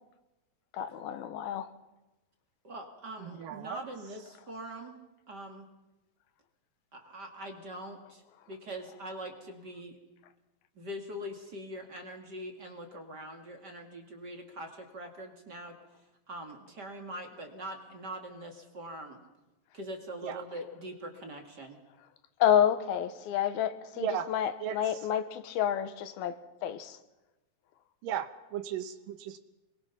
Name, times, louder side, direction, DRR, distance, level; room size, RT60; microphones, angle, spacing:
voice 1, 0.7-1.7 22.4-26.3 26.6-27.0, left 10 dB, 85° left, 3.0 m, -29 dB
voice 2, 2.6-5.0 5.3-5.7 6.9-8.2 8.5-10.0 10.8-15.8 16.3-19.2 19.7-21.8, right 1 dB, 35° right, 2.1 m, -43 dB
voice 3, 3.2-3.8 20.2-20.4 24.0-24.3 24.6-24.8 28.0-29.4, right 9 dB, 70° right, 2.5 m, -35 dB
25.5 x 22.5 x 5.9 m
omnidirectional pair, 4.3 m